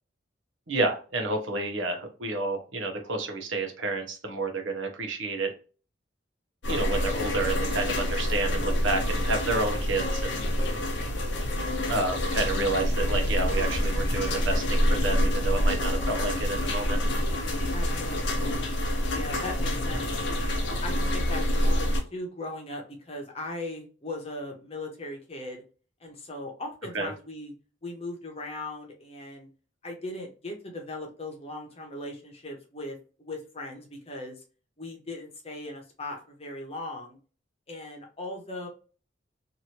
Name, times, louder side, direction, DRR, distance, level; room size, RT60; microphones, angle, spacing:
voice 1, 0.7-5.5 6.7-10.4 11.9-17.0 26.9-27.1, right 2 dB, 80° right, 0.8 m, -30 dB
sound 1, 6.6-22.0, left 1 dB, 65° left, 0.7 m, -27 dB
voice 2, 17.7-18.4 19.1-20.2 20.8-25.6 26.0-27.5 27.8-29.5 29.8-34.4 34.8-37.2 37.7-38.7, left 2 dB, 30° left, 0.9 m, -38 dB
3.0 x 2.6 x 2.8 m
head